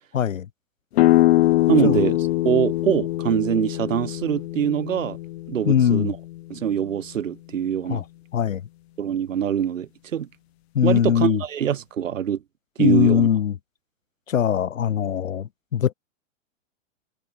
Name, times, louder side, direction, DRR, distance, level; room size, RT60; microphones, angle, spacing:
voice 1, 0.1-0.5 1.8-2.0 5.7-6.1 7.9-8.0 8.3-8.6 10.7-11.4 12.8-13.6 14.3-15.9, left 9 dB, 85° left, 2.4 m, -21 dB
sound 1, 1.0-6.5, left 16 dB, 55° left, 7.0 m, -22 dB
voice 2, 1.7-2.2 2.4-5.2 5.5-6.2 6.5-8.0 9.0-10.3 10.8-12.4 12.8-13.3, right 9 dB, 80° right, 6.1 m, -23 dB
hypercardioid pair, 140°, 38 cm